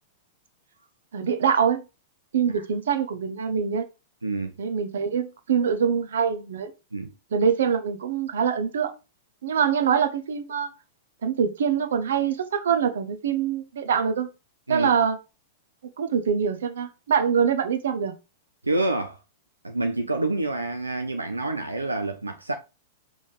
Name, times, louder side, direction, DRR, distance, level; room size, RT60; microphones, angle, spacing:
voice 1, 1.1-1.8 2.3-3.8 4.6-6.7 7.3-8.9 9.4-10.7 11.2-14.3 14.7-15.2 16.0-18.1, right 7 dB, 65° right, 1.0 m, -24 dB
voice 2, 4.2-4.5 6.9-7.1 14.7-14.9 18.6-19.2 19.6-22.5, right 2 dB, 90° right, 0.7 m, -27 dB
5.5 x 3.6 x 4.9 m
figure-of-eight pair, 100°, 0 cm